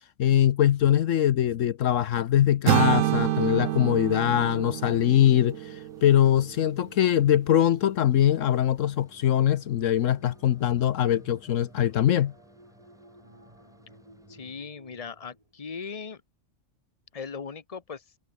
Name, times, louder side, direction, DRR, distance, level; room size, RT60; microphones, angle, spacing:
voice 1, 0.2-12.3, left 11 dB, 75° left, 1.1 m, -22 dB
sound 1, 2.7-6.7, right 13 dB, 80° right, 1.0 m, -27 dB
sound 2, 4.7-14.7, equal, ahead, 4.6 m, -59 dB
sound 3, 8.8-15.7, right 1 dB, 25° right, 7.8 m, -54 dB
voice 2, 14.3-16.2 17.1-18.0, left 5 dB, 30° left, 1.2 m, -38 dB
omnidirectional pair, 1.4 m